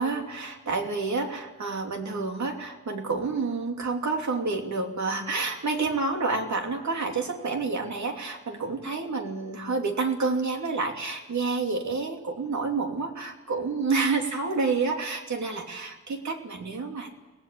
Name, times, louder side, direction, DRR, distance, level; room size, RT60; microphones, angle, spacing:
voice 1, 0.0-17.1, right 4 dB, 65° right, 3 dB, 2.9 m, -29 dB
24.0 x 18.0 x 8.7 m, 1.2 s
wide cardioid pair, 175°, 30 cm